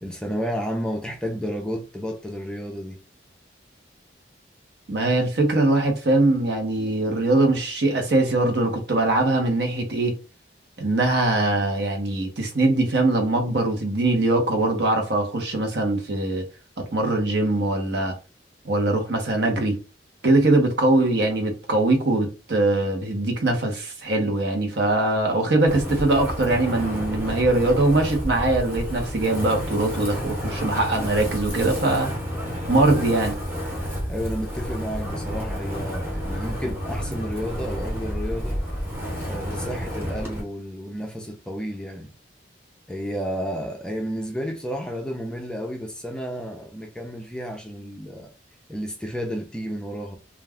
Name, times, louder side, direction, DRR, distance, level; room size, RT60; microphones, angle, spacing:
voice 1, 0.0-3.0 34.1-38.6 39.3-42.1 42.9-48.3 48.7-50.2, equal, 5° left, 0.4 m, -31 dB
voice 2, 4.9-10.2 10.8-16.4 16.9-18.1 18.6-19.7 20.2-32.1 32.7-33.3, right 2 dB, 65° right, 0.8 m, -22 dB
Wind, 25.7-40.4, equal, 15° right, 0.8 m, -30 dB
2.4 x 2.2 x 3.4 m
head